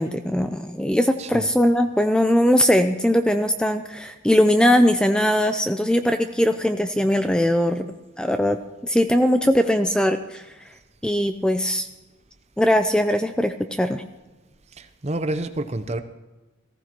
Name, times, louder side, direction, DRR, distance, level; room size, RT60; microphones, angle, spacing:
voice 1, 0.0-7.9 8.2-8.6 8.9-10.4 11.0-11.9 12.6-14.0, equal, 5° left, 7 dB, 0.4 m, -20 dB
voice 2, 1.2-1.5 14.7-16.0, right 2 dB, 35° right, 10 dB, 0.7 m, -29 dB
18.5 x 15.0 x 3.0 m, 1.2 s
head